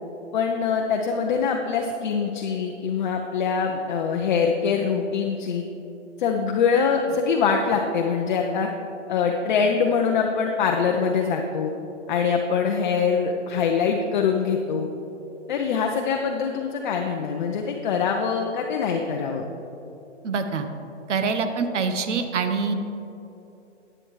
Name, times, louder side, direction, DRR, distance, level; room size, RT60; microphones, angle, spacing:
voice 1, 0.3-5.6 6.2-8.7 9.1-11.7 12.1-14.9 15.5-19.4, left 6 dB, 40° left, 2 dB, 0.7 m, -23 dB
voice 2, 20.2-20.7 21.1-22.7, right 5 dB, 75° right, 7 dB, 1.0 m, -25 dB
11.0 x 9.0 x 3.2 m, 2.9 s
hypercardioid pair, 155°, 36 cm